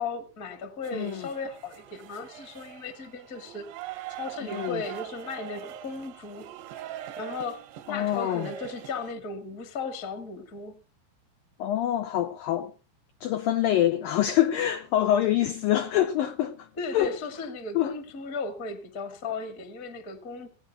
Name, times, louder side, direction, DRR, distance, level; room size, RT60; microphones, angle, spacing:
voice 1, 0.0-3.7 4.2-6.5 7.2-10.7 16.8-20.5, left 4 dB, 35° left, 1.3 m, -36 dB
sound 1, 0.8-9.1, right 12 dB, 80° right, 3.4 m, -42 dB
voice 2, 0.9-1.3 4.5-4.8 7.9-8.5 11.6-12.7 13.2-16.7 16.9-17.2 17.7-17.9, left 12 dB, 85° left, 2.0 m, -25 dB
18.5 x 8.7 x 5.7 m
omnidirectional pair, 5.2 m